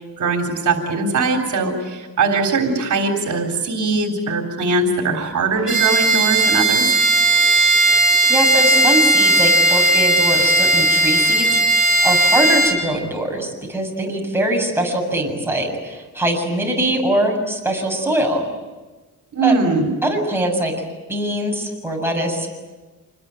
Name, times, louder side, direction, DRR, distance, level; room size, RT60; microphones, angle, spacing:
voice 1, 0.2-6.9 19.3-19.9, right 3 dB, 60° right, 2 dB, 3.7 m, -20 dB
Bowed string instrument, 5.7-12.8, right 1 dB, 40° right, 5.5 m, -16 dB
voice 2, 8.3-18.4 19.4-19.5 20.0-20.7 21.1-22.5, right 1 dB, 5° right, 0 dB, 7.2 m, -22 dB
27.0 x 21.0 x 9.1 m, 1.2 s
cardioid pair, 110°, 34 cm